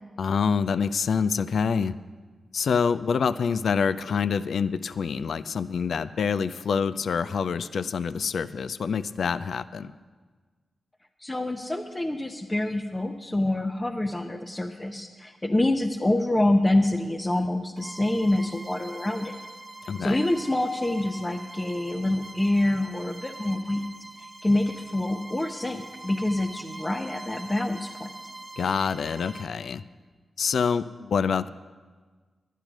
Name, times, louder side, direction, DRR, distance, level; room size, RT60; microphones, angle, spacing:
voice 1, 0.2-1.9 2.5-9.9 19.9-20.2 28.6-29.8 30.4-31.5, left 6 dB, 75° left, 14 dB, 0.3 m, -26 dB
voice 2, 11.2-19.3 20.0-23.8 24.2-28.1, left 1 dB, 20° left, 3 dB, 0.7 m, -26 dB
Bowed string instrument, 17.8-29.6, right 2 dB, 20° right, 0.7 m, -43 dB
10.5 x 10.0 x 6.1 m, 1.4 s
cardioid pair, 70°, 0 cm